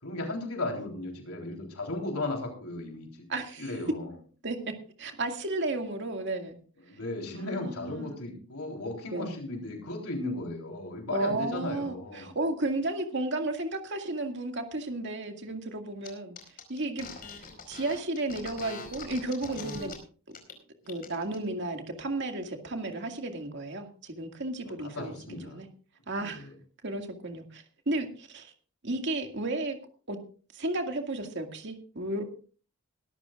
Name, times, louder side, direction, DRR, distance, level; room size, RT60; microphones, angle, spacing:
voice 1, 0.0-3.3 3.6-4.1 6.9-12.3 24.8-25.6 26.2-26.5, left 2 dB, 90° left, 1 dB, 3.9 m, -36 dB
voice 2, 3.3-3.7 4.4-4.6 5.0-6.6 7.3-8.1 9.1-9.3 11.1-16.4 16.7-17.1 17.4-19.9 20.9-25.1 25.5-25.7 26.1-26.5 26.8-28.5 28.8-29.8 30.1-30.2 30.5-32.2, right 2 dB, 55° right, 4 dB, 2.1 m, -33 dB
sound 1, 16.0-16.1 16.4-19.9 20.3-20.5 20.9-21.4, left 4 dB, 40° left, 4.8 m, -42 dB
21.5 x 13.5 x 2.5 m, 0.39 s
head